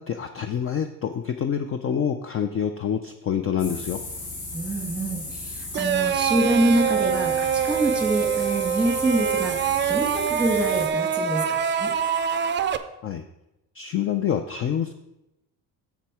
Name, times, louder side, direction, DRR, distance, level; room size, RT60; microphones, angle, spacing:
voice 1, 0.0-4.0 13.0-13.2 13.7-14.9, left 8 dB, 35° left, 8 dB, 0.5 m, -27 dB
sound 1, 3.6-10.9, left 2 dB, 70° left, 2.7 m, -36 dB
voice 2, 4.5-11.9, right 1 dB, 5° right, 2 dB, 1.6 m, -26 dB
sound 2, 5.7-12.8, right 8 dB, 30° right, 0.4 m, -25 dB
7.3 x 7.0 x 4.7 m, 0.91 s
cardioid pair, 145°, 38 cm